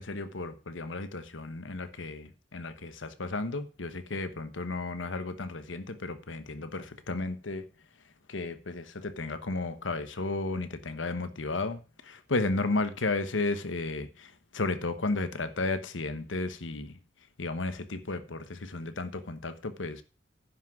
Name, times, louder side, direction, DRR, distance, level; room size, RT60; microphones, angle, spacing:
voice 1, 0.0-7.6 8.3-17.0 17.4-20.0, left 3 dB, 90° left, 1.1 m, -33 dB
10.0 x 6.1 x 5.9 m
head